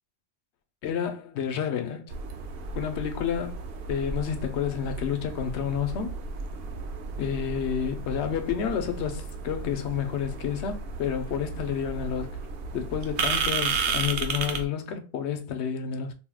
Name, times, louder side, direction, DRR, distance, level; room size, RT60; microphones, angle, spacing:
voice 1, 0.8-2.1 2.8-3.6 3.9-6.2 7.2-12.3 12.7-16.1, left 8 dB, 85° left, 0.9 m, -30 dB
sound 1, 2.1-14.7, right 4 dB, 70° right, 0.8 m, -33 dB
3.5 x 2.6 x 2.2 m
omnidirectional pair, 1.1 m